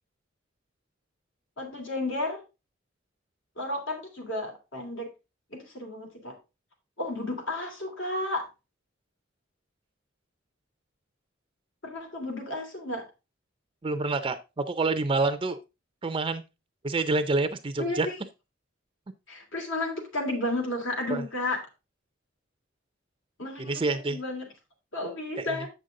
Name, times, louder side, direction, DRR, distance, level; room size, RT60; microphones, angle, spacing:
voice 1, 1.6-2.4 3.6-5.1 5.5-6.3 7.0-8.5 11.8-13.0 17.8-18.2 19.3-21.6 23.4-24.5 24.9-25.7, left 2 dB, 75° left, 2 dB, 2.8 m, -32 dB
voice 2, 13.8-15.6 16.0-16.4 16.8-18.1 21.1-21.2 23.6-24.2 25.4-25.5, right 3 dB, 25° right, 10 dB, 0.5 m, -27 dB
8.1 x 6.6 x 3.7 m, 0.27 s
head